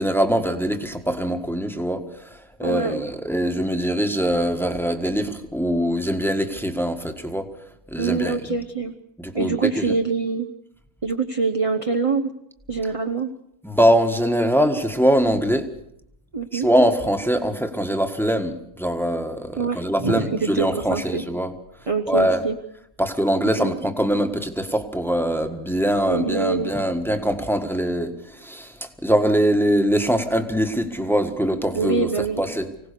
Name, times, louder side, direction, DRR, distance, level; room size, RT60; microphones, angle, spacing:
voice 1, 0.0-7.5 7.9-8.5 9.2-9.9 13.6-15.7 16.5-21.5 22.1-22.4 23.0-32.1 32.4-32.7, equal, ahead, 6 dB, 1.5 m, -22 dB
voice 2, 2.6-3.0 8.0-8.9 9.3-10.5 11.0-12.3 12.7-13.3 16.3-16.7 19.6-21.2 21.9-22.6 23.6-23.7 26.1-26.7 31.7-32.4, right 4 dB, 30° right, 5 dB, 0.9 m, -25 dB
25.0 x 17.5 x 6.8 m, 0.75 s
omnidirectional pair, 1.5 m